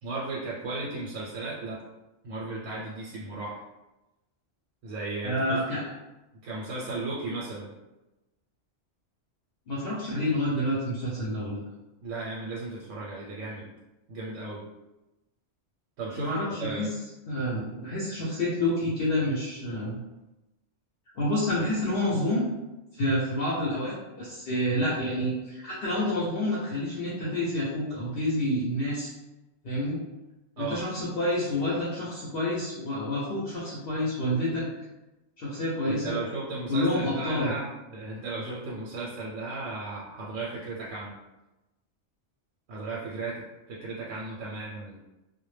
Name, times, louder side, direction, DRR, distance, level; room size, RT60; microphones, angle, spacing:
voice 1, 0.0-1.8 2.2-3.6 4.8-5.6 6.4-7.7 12.0-13.7 14.1-14.6 16.0-16.3 16.6-16.9 30.6-30.8 35.9-41.1 42.7-43.4 43.7-45.0, right 3 dB, 90° right, -5 dB, 0.9 m, -35 dB
voice 2, 5.2-5.9 9.7-11.6 16.1-16.9 17.3-20.0 21.2-22.4 22.9-29.1 29.6-30.0 30.6-34.7 35.4-36.1 36.7-37.6, left 1 dB, 60° left, -6 dB, 0.7 m, -28 dB
2.1 x 2.1 x 3.1 m, 1.0 s
omnidirectional pair, 1.2 m